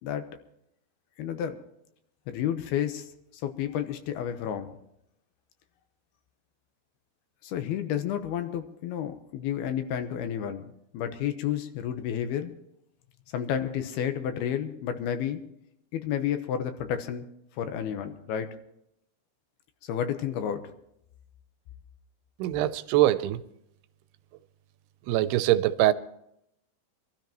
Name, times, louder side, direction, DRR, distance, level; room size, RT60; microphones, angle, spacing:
voice 1, 1.2-1.6 2.3-3.1 3.4-4.8 7.4-10.6 10.9-12.5 13.3-15.4 15.9-17.3 17.6-18.5 19.9-20.6, left 9 dB, 85° left, 3.0 m, -31 dB
voice 2, 22.4-23.4 25.1-25.9, right 14 dB, 90° right, 2.7 m, -23 dB
25.5 x 13.0 x 3.0 m
omnidirectional pair, 4.5 m